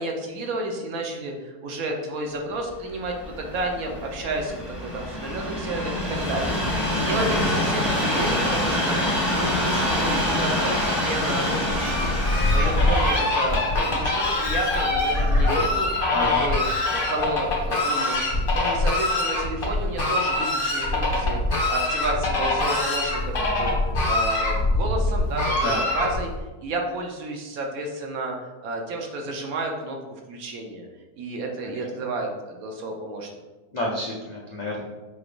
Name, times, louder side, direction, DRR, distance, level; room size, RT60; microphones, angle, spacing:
voice 1, 0.0-6.6 7.0-12.2 12.5-15.9 16.2-16.6 16.9-18.2 18.5-21.4 21.7-26.3 26.6-30.0 30.3-30.9 31.2-33.3, right 2 dB, 65° right, 1 dB, 1.1 m, -31 dB
Train, 2.9-16.1 16.8-16.9, left 1 dB, ahead, 1.1 m, -26 dB
Fowl, 11.6-26.4, left 2 dB, 40° left, 1.2 m, -23 dB
voice 2, 16.1-16.4 25.5-25.9 31.8-31.9 33.7-34.8, left 1 dB, 80° left, -4 dB, 0.3 m, -29 dB
6.0 x 3.2 x 2.5 m, 1.2 s
omnidirectional pair, 1.7 m